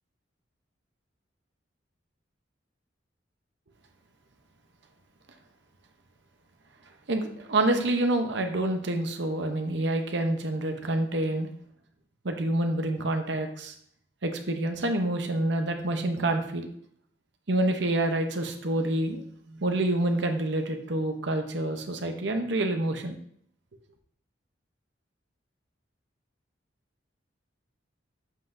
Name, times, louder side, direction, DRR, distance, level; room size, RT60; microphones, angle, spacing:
voice 1, 7.1-11.5 12.2-13.7 14.2-16.7 17.5-19.2 19.5-23.2, right 1 dB, 65° right, 5 dB, 0.8 m, -27 dB
7.3 x 5.8 x 2.6 m, 0.67 s
head